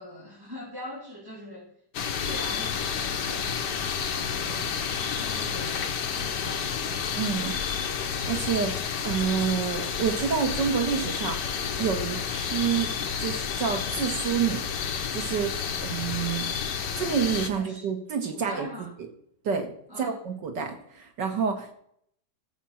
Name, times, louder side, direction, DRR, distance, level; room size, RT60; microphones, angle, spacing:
voice 1, 0.0-1.7 2.2-3.5 4.0-4.8 5.1-6.8 17.5-17.8 18.3-18.9 19.9-20.1, equal, 10° right, -6 dB, 3.1 m, -42 dB
sound 1, 1.9-17.5, left 7 dB, 80° left, 1.7 m, -30 dB
voice 2, 7.2-7.6 8.3-12.9 13.2-14.6 15.1-15.5 15.8-16.5 17.0-18.9 19.4-19.7 20.0-21.7, right 7 dB, 85° right, 5 dB, 2.4 m, -28 dB
14.0 x 7.5 x 5.8 m, 0.68 s
omnidirectional pair, 1.9 m